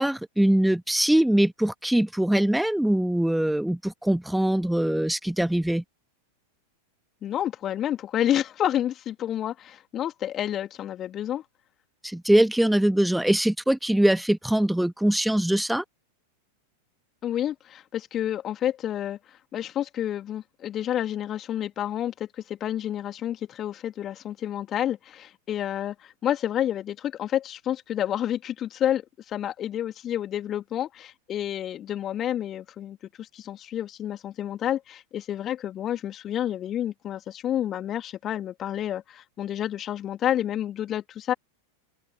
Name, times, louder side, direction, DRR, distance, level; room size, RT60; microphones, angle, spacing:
voice 1, 0.0-5.8 12.0-15.8, right 1 dB, ahead, 1.8 m, -22 dB
voice 2, 7.2-11.4 17.2-19.2 19.5-41.3, left 11 dB, 30° left, 3.2 m, -29 dB
open air
figure-of-eight pair, 90°, 0 cm